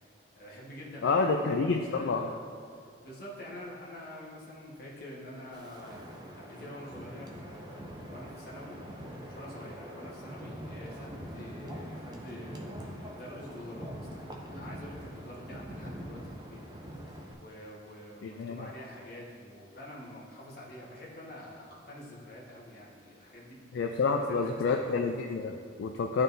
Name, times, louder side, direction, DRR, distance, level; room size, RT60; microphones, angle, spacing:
voice 1, 0.4-2.3 2.6-8.9 9.3-16.6 17.3-23.6 24.1-25.0, left 1 dB, 50° left, -5 dB, 1.3 m, -47 dB
voice 2, 1.0-2.2 18.2-18.7 23.7-26.2, left 4 dB, 70° left, 3 dB, 0.3 m, -29 dB
Wind, 5.5-17.3, equal, 20° right, 0.5 m, -43 dB
11.5 x 3.8 x 2.6 m, 2.3 s
head